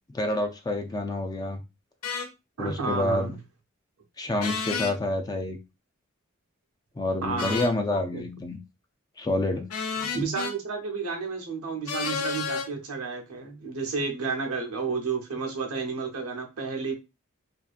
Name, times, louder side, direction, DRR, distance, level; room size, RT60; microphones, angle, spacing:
voice 1, 0.1-1.6 2.6-3.3 4.2-5.6 7.0-8.6 9.2-9.6, left 1 dB, 20° left, 0.3 m, -28 dB
sound 1, 2.0-2.3 4.4-4.9 7.4-7.8 9.7-10.5 11.9-12.7, left 5 dB, 85° left, 0.5 m, -31 dB
voice 2, 2.6-3.4 7.2-7.6 8.1-8.2 10.0-16.9, right 4 dB, 90° right, 0.7 m, -31 dB
2.6 x 2.4 x 2.4 m
head